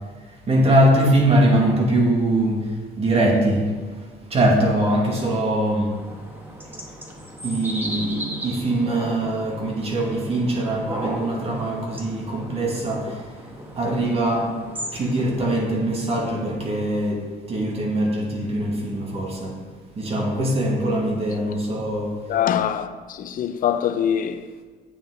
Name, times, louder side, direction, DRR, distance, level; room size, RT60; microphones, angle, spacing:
voice 1, 0.5-2.7 3.0-3.7 4.3-5.9 7.4-13.2 13.8-14.5 14.9-19.6 19.9-22.2, right 1 dB, 35° right, 2.3 m, -22 dB
sound 1, 5.9-15.5, equal, 10° right, 1.5 m, -36 dB
voice 2, 22.3-24.6, left 9 dB, 55° left, 0.6 m, -24 dB
8.9 x 8.6 x 3.9 m
cardioid pair, 110°, 17 cm